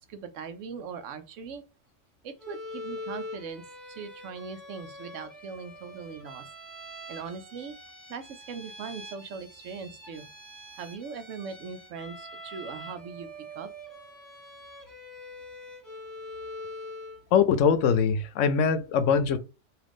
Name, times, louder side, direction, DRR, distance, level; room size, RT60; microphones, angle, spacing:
voice 1, 0.1-1.6 2.2-6.5 7.1-7.8 8.1-10.3 10.8-13.3 13.5-13.7, right 5 dB, 90° right, 1.0 m, -40 dB
Bowed string instrument, 2.4-17.3, left 1 dB, 15° left, 1.8 m, -44 dB
voice 2, 17.3-19.4, left 6 dB, 85° left, 0.9 m, -22 dB
3.7 x 2.8 x 3.5 m
omnidirectional pair, 1.3 m